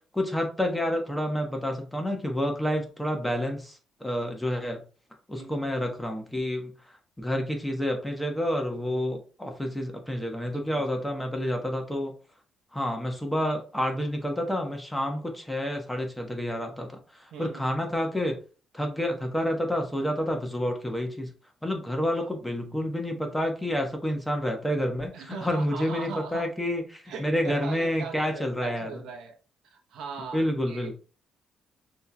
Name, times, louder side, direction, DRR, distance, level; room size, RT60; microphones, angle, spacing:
voice 1, 0.1-4.8 5.3-6.7 7.2-12.1 12.7-18.4 18.7-21.3 21.6-29.0 30.3-30.9, equal, 5° left, 1.0 m, -29 dB
voice 2, 10.5-11.0 17.3-17.7 22.1-22.3 25.1-26.5 27.1-29.3 29.6-30.9, right 5 dB, 80° right, 0.8 m, -40 dB
6.1 x 2.9 x 2.2 m
cardioid pair, 90°, 0 cm